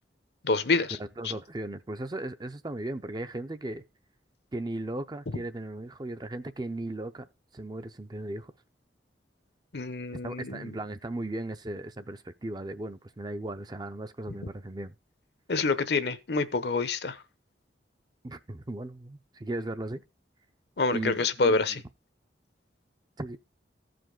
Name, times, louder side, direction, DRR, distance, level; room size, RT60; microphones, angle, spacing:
voice 1, 0.4-1.0 1.2-1.3 9.7-10.7 15.5-17.2 20.8-21.8, left 3 dB, 60° left, 0.8 m, -27 dB
voice 2, 1.0-3.8 4.5-7.3 7.5-8.5 10.2-14.9 18.2-20.0 20.9-21.8 23.2-23.4, right 2 dB, 20° right, 0.5 m, -37 dB
15.0 x 5.1 x 3.8 m
head